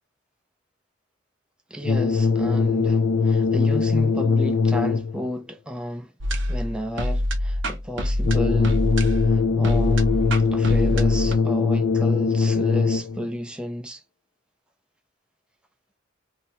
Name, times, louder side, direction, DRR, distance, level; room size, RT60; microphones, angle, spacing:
voice 1, 1.7-6.1 6.5-8.8 9.3-10.1 10.5-14.0, equal, 5° right, 0.4 m, -32 dB
sound 1, 1.8-5.3 8.2-13.3, left 4 dB, 65° left, 0.5 m, -21 dB
sound 2, 6.2-11.4, left 1 dB, 65° right, 0.7 m, -26 dB
2.7 x 2.2 x 2.9 m
head